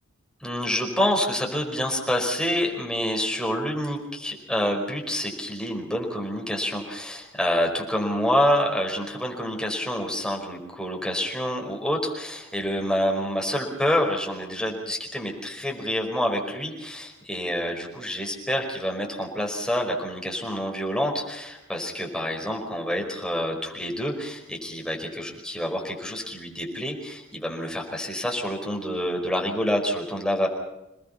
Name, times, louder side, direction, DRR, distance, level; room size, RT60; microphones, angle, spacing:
voice 1, 0.4-30.5, equal, 5° left, 1 dB, 4.9 m, -27 dB
28.0 x 19.5 x 5.8 m, 0.94 s
head